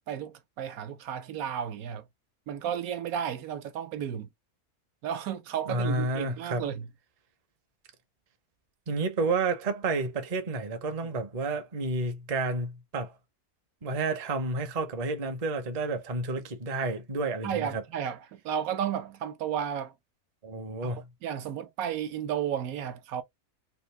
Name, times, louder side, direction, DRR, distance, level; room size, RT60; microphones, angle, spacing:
voice 1, 0.0-2.0 2.5-4.3 5.0-6.9 17.4-19.9 20.8-20.9 21.2-23.2, right 9 dB, 75° right, 1.1 m, -33 dB
voice 2, 5.7-6.7 8.9-13.2 13.8-17.8 20.4-21.1, right 3 dB, 35° right, 0.6 m, -30 dB
3.8 x 2.6 x 3.1 m
omnidirectional pair, 1.6 m